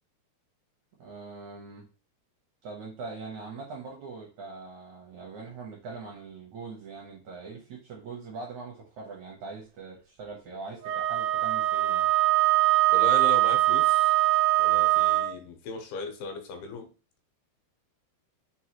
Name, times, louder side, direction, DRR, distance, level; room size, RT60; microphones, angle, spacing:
voice 1, 1.0-1.9 2.6-12.1, right 4 dB, 75° right, -2 dB, 1.7 m, -42 dB
Wind instrument woodwind instrument, 10.8-15.4, right 15 dB, 90° right, 2.5 m, -22 dB
voice 2, 12.9-14.2 14.6-16.9, left 4 dB, 85° left, 5 dB, 2.7 m, -37 dB
6.2 x 2.3 x 2.9 m, 0.34 s
omnidirectional pair, 4.4 m